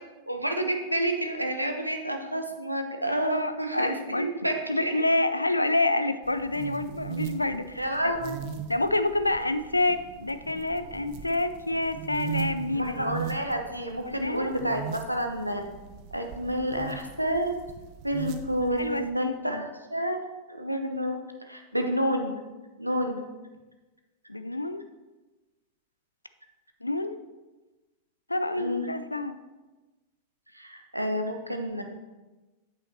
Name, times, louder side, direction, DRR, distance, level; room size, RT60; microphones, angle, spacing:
voice 1, 0.3-4.9 7.8-8.4 12.7-15.6 16.1-17.5 18.0-20.2 20.5-21.2 21.5-22.4 22.8-23.2 28.6-28.9 30.5-31.8, equal, 90° right, 4 dB, 0.8 m, -29 dB
voice 2, 3.3-4.3 4.7-8.1 8.7-13.1 14.1-14.6 18.7-19.7 24.3-24.8 26.8-27.2 28.3-29.4, left 2 dB, 85° left, 12 dB, 0.4 m, -28 dB
sound 1, 6.2-19.1, right 8 dB, 45° right, 0.7 m, -39 dB
8.8 x 7.9 x 3.0 m, 1.2 s
figure-of-eight pair, 90°, 0 cm